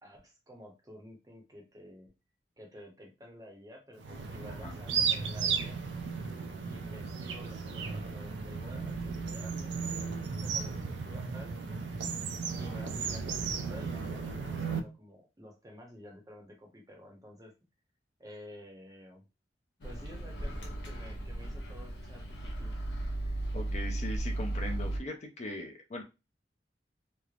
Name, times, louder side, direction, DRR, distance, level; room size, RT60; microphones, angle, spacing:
voice 1, 0.0-2.1 2.6-5.8 6.7-9.7 10.4-11.5 12.6-17.5 18.2-19.2 19.8-22.7, equal, 20° right, 1 dB, 0.7 m, -51 dB
sound 1, 4.0-14.8, right 5 dB, 85° right, 0.4 m, -35 dB
Microwave oven, 19.8-25.0, right 1 dB, 85° left, 0.7 m, -36 dB
voice 2, 23.5-26.0, left 2 dB, 40° left, 3 dB, 0.5 m, -39 dB
3.1 x 2.0 x 2.3 m, 0.26 s
head